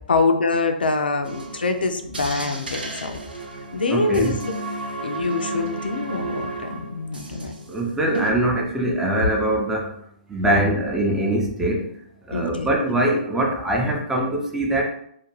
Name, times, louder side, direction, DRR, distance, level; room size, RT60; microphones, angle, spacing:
voice 1, 0.1-3.2 3.7-4.5 5.0-7.5 10.5-10.7 12.3-12.7, left 3 dB, 85° left, 6 dB, 0.4 m, -24 dB
sound 1, 1.2-7.8 8.1-8.3, right 2 dB, 85° right, 0.5 m, -33 dB
voice 2, 3.9-4.4 7.7-9.8 10.3-11.8 12.3-14.9, right 1 dB, 10° right, 0 dB, 0.5 m, -22 dB
2.4 x 2.2 x 3.1 m, 0.70 s
hypercardioid pair, 130°, 5 cm